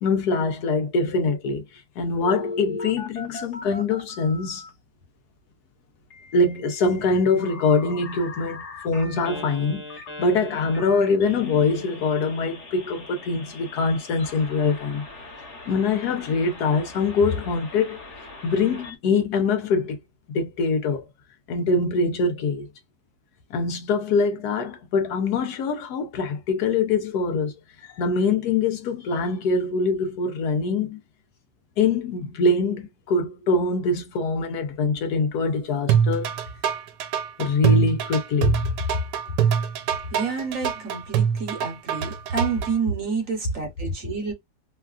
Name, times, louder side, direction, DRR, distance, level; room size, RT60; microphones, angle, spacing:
voice 1, 0.0-4.7 6.3-15.0 15.7-18.0 18.4-20.0 20.3-21.0 21.5-22.7 23.5-27.5 27.8-31.0 31.8-36.3 37.4-38.6 43.8-43.9, left 4 dB, 75° left, 1.2 m, -24 dB
Telephone, 2.2-4.7 6.1-18.9, left 2 dB, 45° left, 1.4 m, -39 dB
sound 1, 35.9-42.7, right 8 dB, 85° right, 1.2 m, -23 dB
voice 2, 40.1-44.3, right 5 dB, 55° right, 1.2 m, -28 dB
3.2 x 2.3 x 2.3 m
omnidirectional pair, 1.8 m